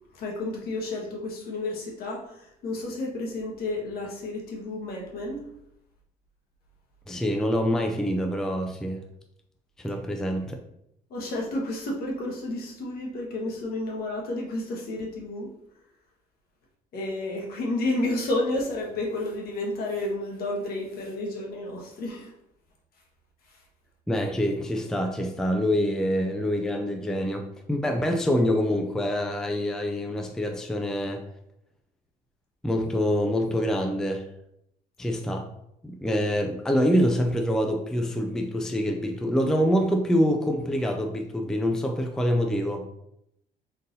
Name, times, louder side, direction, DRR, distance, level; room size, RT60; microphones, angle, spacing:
voice 1, 0.1-5.4 11.1-15.5 16.9-22.3 23.5-23.6, left 2 dB, 65° left, -2 dB, 1.3 m, -31 dB
voice 2, 7.1-9.0 9.8-10.6 24.1-31.2 32.6-34.2 35.0-35.5 35.8-42.8, equal, 5° left, 3 dB, 0.4 m, -25 dB
3.9 x 2.6 x 4.0 m, 0.78 s
cardioid pair, 110°, 17 cm